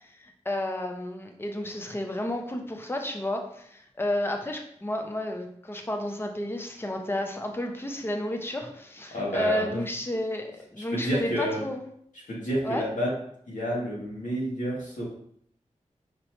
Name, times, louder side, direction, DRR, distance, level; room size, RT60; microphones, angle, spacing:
voice 1, 0.2-11.8 12.6-12.8, left 1 dB, 20° left, 3 dB, 0.6 m, -31 dB
voice 2, 9.1-9.8 10.8-11.6 12.3-13.1 13.5-15.0, equal, 90° left, -5 dB, 1.7 m, -29 dB
5.3 x 3.0 x 3.0 m, 0.68 s
wide cardioid pair, 95°, 13 cm